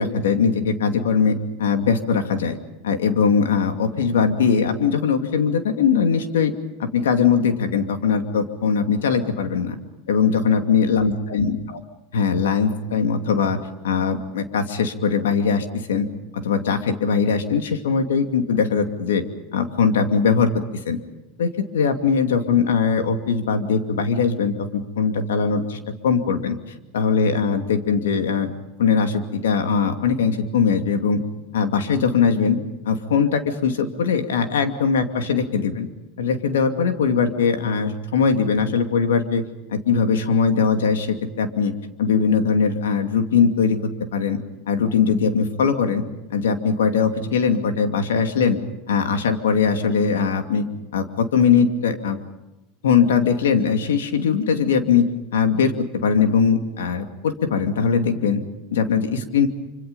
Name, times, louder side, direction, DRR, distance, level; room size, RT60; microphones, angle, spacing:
voice 1, 0.0-2.6 2.8-6.5 6.8-9.8 10.1-11.5 12.1-13.6 13.8-16.1 16.3-19.2 19.5-20.5 20.9-21.0 21.4-26.6 26.9-28.5 28.8-31.2 31.5-32.6 32.8-35.9 36.2-39.4 39.7-41.7 42.0-44.4 44.7-46.0 46.3-48.6 48.9-50.6 50.9-52.2 52.8-55.1 55.3-58.4 58.7-59.5, left 6 dB, 90° left, 6 dB, 2.6 m, -20 dB
26.5 x 26.0 x 5.5 m, 0.99 s
hypercardioid pair, 105°, 0 cm